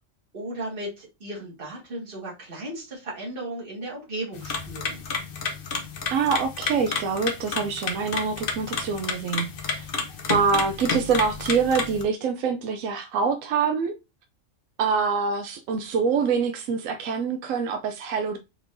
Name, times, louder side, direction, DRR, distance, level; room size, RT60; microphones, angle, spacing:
voice 1, 0.3-5.0, right 1 dB, 40° right, 2.0 m, -35 dB
sound 1, 4.3-12.0, left 4 dB, 50° left, 0.9 m, -31 dB
voice 2, 6.1-9.9 10.3-14.0 14.8-18.4, right 5 dB, 80° right, 0.9 m, -25 dB
4.5 x 4.2 x 2.6 m
omnidirectional pair, 1.4 m